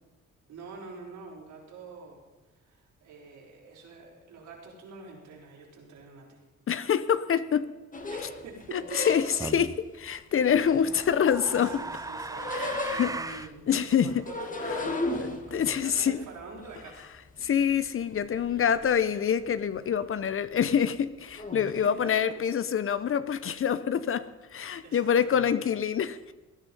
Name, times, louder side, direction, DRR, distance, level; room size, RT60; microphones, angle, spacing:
voice 1, 0.5-2.2 2.6-6.4 8.1-9.1 11.3-17.1 18.2-18.9 21.6-22.4 24.8-25.7, right 4 dB, 75° right, 5.1 m, -46 dB
voice 2, 6.7-7.7 8.7-9.7 9.9-11.8 12.5-13.1 13.7-14.2 14.7-14.8 15.2-16.2 17.4-26.2, left 8 dB, 45° left, 0.8 m, -26 dB
sound 1, 7.9-9.6 10.4-11.7 12.0-13.4 14.1-17.9 18.2-18.9 19.1-19.7 20.0-20.3 21.3-21.8, left 2 dB, 25° left, 2.0 m, -36 dB
sound 2, 9.4-9.8 10.8-13.5, right 3 dB, 10° right, 0.6 m, -37 dB
18.5 x 11.0 x 5.5 m
cardioid pair, 90°, 30 cm